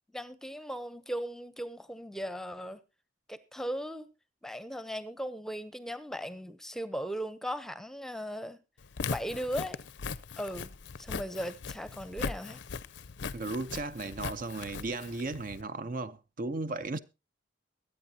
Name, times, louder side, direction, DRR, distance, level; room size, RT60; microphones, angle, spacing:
voice 1, 0.1-2.8 3.3-4.1 4.4-8.6 9.1-9.8 10.4-10.7 11.0-12.6, equal, ahead, 0.7 m, -37 dB
Walk footsteps, 8.8-15.6, left 5 dB, 65° left, 0.6 m, -39 dB
voice 2, 13.3-17.0, right 3 dB, 45° right, 0.6 m, -35 dB
22.5 x 8.7 x 2.8 m
head